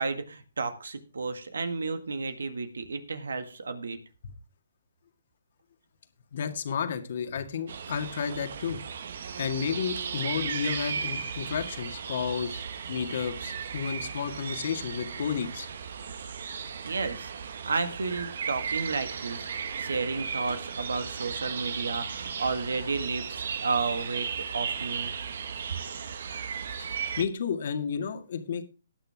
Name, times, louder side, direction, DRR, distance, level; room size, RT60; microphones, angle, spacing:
voice 1, 0.0-4.0 16.8-17.3 17.6-25.1 26.8-26.9, right 4 dB, 85° right, 9 dB, 1.8 m, -32 dB
voice 2, 6.3-8.8 9.4-12.6 12.9-15.7 26.8-28.6, left 7 dB, 60° left, 7 dB, 2.0 m, -32 dB
sound 1, 7.7-27.2, right 6 dB, 65° right, 1.4 m, -36 dB
18.5 x 6.7 x 3.6 m, 0.34 s
hypercardioid pair, 145°, 0 cm